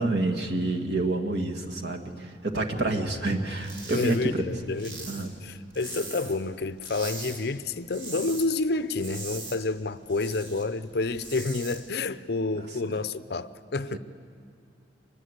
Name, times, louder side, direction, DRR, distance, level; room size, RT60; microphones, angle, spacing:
voice 1, 0.0-4.4 5.1-5.3 12.5-12.7 13.9-14.0, right 2 dB, 70° right, 1.9 m, -28 dB
sound 1, 3.6-4.2 4.5-6.5 6.8-7.4 7.7-8.5 8.8-10.6 11.0-11.8, right 3 dB, 90° right, 4.2 m, -40 dB
voice 2, 3.9-14.0, left 3 dB, 60° left, 0.6 m, -29 dB
24.0 x 21.0 x 8.1 m
head